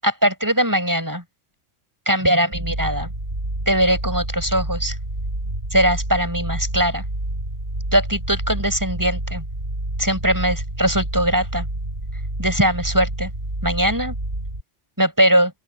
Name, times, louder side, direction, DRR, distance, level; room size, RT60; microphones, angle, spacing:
voice 1, 0.0-1.2 2.1-3.1 3.7-4.9 5.7-7.0 7.9-9.4 10.0-11.7 12.4-13.3 13.6-14.1 15.0-15.5, equal, 15° right, 7.7 m, -20 dB
sound 1, 2.5-14.6, right 1 dB, 50° right, 6.2 m, -28 dB
open air
omnidirectional pair, 1.3 m